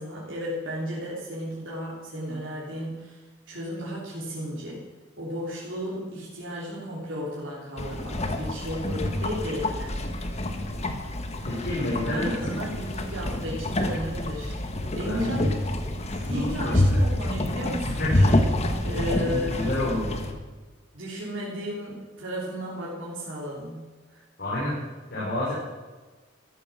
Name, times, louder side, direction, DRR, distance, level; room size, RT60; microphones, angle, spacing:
voice 1, 0.0-4.8 5.2-10.0 12.0-14.6 14.9-15.7 16.3-18.4 18.8-19.8 20.9-24.2, equal, 85° right, -6 dB, 3.3 m, -34 dB
sound 1, 7.8-20.3, left 1 dB, 35° left, 1.4 m, -27 dB
voice 2, 11.4-12.6 15.0-15.5 16.0-17.0 17.8-18.3 19.1-20.1 24.4-24.8 25.1-25.5, left 1 dB, 55° left, -7 dB, 5.1 m, -30 dB
14.0 x 12.0 x 6.3 m, 1.3 s
head